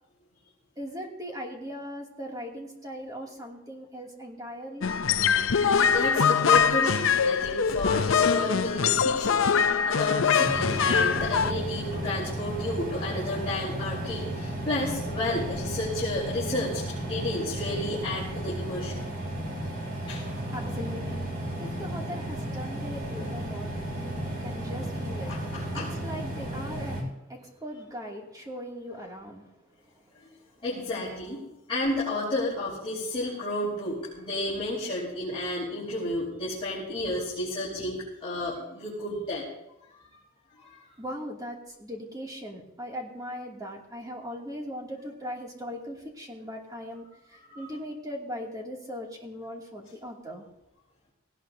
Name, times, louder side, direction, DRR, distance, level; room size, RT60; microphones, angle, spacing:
voice 1, 0.8-4.9 20.1-29.5 29.9-30.0 37.6-37.9 41.0-50.4, equal, 20° right, -1 dB, 2.6 m, -39 dB
sound 1, 4.8-11.5, left 6 dB, 75° left, 0.6 m, -23 dB
voice 2, 5.9-19.0 20.1-20.3 25.2-25.9 30.6-31.4 31.7-39.5 40.5-40.8 47.5-47.6, left 1 dB, 25° left, -8 dB, 4.6 m, -32 dB
sound 2, 10.5-27.0, right 1 dB, 50° right, 3.8 m, -34 dB
18.5 x 18.0 x 2.8 m, 0.90 s
head